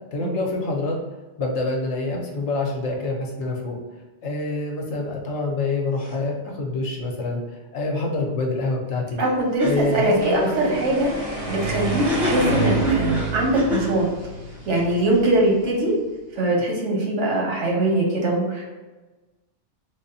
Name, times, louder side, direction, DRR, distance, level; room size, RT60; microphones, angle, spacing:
voice 1, 0.1-1.0 1.4-3.8 4.2-7.4 7.7-9.2 9.6-10.7, left 2 dB, 75° left, 0 dB, 1.0 m, -26 dB
sound 1, 9.2-9.3 9.6-9.7 11.9-14.0, equal, ahead, 0.5 m, -27 dB
voice 2, 9.2-11.1 11.5-14.1 14.7-15.9 16.4-18.7, right 1 dB, 80° right, -2 dB, 1.2 m, -22 dB
sound 2, 9.7-15.8, right 2 dB, 40° right, 1.0 m, -29 dB
3.4 x 2.1 x 4.0 m, 1.2 s
omnidirectional pair, 1.2 m